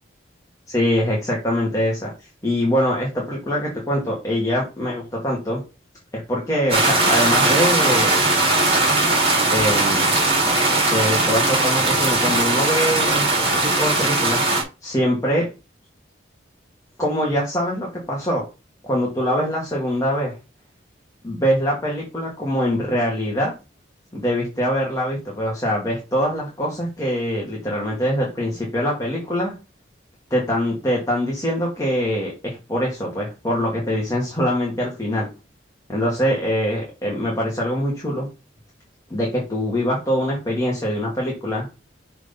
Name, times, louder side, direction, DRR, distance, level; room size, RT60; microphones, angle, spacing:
voice 1, 0.7-5.6 6.3-8.2 9.4-10.1 10.9-14.4 14.8-15.5 17.0-18.5 18.8-20.4 21.2-23.5 24.1-29.5 30.3-35.3 35.9-38.3 39.1-41.7, equal, 20° left, -3 dB, 2.1 m, -23 dB
sound 1, 6.7-14.6, right 2 dB, 30° right, 4.3 m, -19 dB
6.3 x 4.9 x 5.4 m, 0.30 s
head